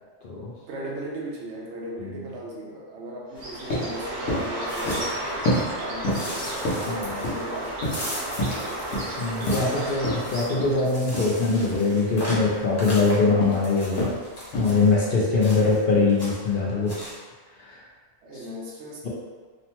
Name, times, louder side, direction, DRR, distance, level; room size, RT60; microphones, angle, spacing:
voice 1, 0.7-8.9 9.5-10.0 15.6-15.7 18.2-19.1, right 1 dB, 70° right, -3 dB, 0.9 m, -38 dB
Bird, 3.3-11.0, right 1 dB, 50° right, 0.7 m, -33 dB
sound 1, 3.4-3.5 3.7-3.9 4.3-4.5 4.9-5.1 5.5-5.7 6.0-6.3 6.6-7.5 7.8-8.7 8.9-9.1 9.5-9.7 10.0-10.2 10.6-10.8 11.1-11.3 11.7-11.9 12.3-12.5 12.9-13.1 13.4-13.6 14.0-14.2 14.5-14.8, equal, 80° left, 1.1 m, -28 dB
sound 2, 4.3-5.7 6.1-14.9 15.4-15.8 16.1-16.5 16.9-17.2, equal, 20° left, 0.8 m, -38 dB
voice 2, 9.2-14.1 14.5-17.1 17.6-17.8, left 3 dB, 60° left, -5 dB, 0.6 m, -23 dB
3.0 x 2.1 x 2.8 m, 1.5 s
omnidirectional pair, 1.3 m